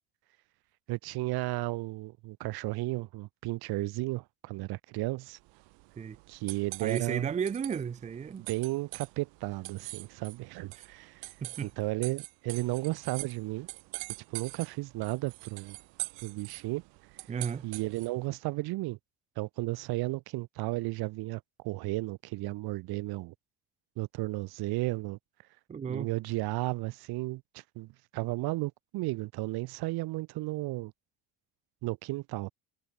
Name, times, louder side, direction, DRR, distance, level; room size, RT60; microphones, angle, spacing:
voice 1, 0.9-5.4 6.3-7.3 8.4-11.2 11.6-13.7 14.3-15.8 16.2-16.8 17.6-19.0 19.4-23.3 24.0-25.2 25.9-27.4 27.7-30.9 31.8-32.5, right 20 dB, 60° right, 1.2 m, -34 dB
sound 1, 5.4-18.3, right 27 dB, 80° right, 2.0 m, -45 dB
voice 2, 6.8-8.5 10.7-10.8 11.4-11.7 17.3-17.7 25.7-26.1, right 7 dB, 15° right, 0.7 m, -34 dB
cardioid pair, 165°, 43 cm